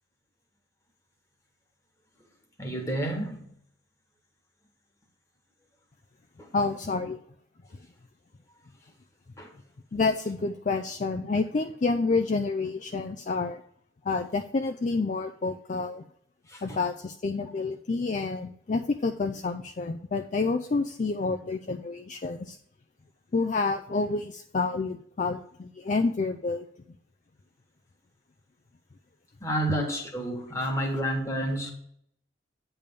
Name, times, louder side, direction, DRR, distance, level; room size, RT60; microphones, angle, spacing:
voice 1, 2.6-3.5 6.4-6.5 9.4-9.5 16.5-16.8 29.4-31.7, right 1 dB, 15° left, 1.4 m, -30 dB
voice 2, 6.5-7.2 9.9-13.6 14.1-16.0 16.6-22.6 23.3-26.7, left 3 dB, 40° left, 0.4 m, -28 dB
9.0 x 3.4 x 6.8 m
head